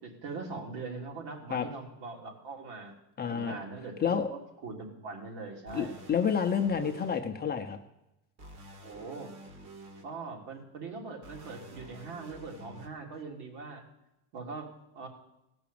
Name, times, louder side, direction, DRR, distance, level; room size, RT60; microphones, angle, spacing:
voice 1, 0.0-2.9 3.3-4.0 4.3-6.0 8.8-9.4 10.0-13.8 14.3-15.1, right 4 dB, 60° right, 1 dB, 3.4 m, -41 dB
voice 2, 3.2-3.5 4.0-4.3 5.7-7.8, left 7 dB, 20° left, 4 dB, 0.7 m, -29 dB
sound 1, 5.7-7.2 8.4-10.0 11.2-12.9, right 1 dB, 40° right, 1.9 m, -49 dB
17.0 x 6.1 x 8.6 m, 0.90 s
cardioid pair, 145°, 46 cm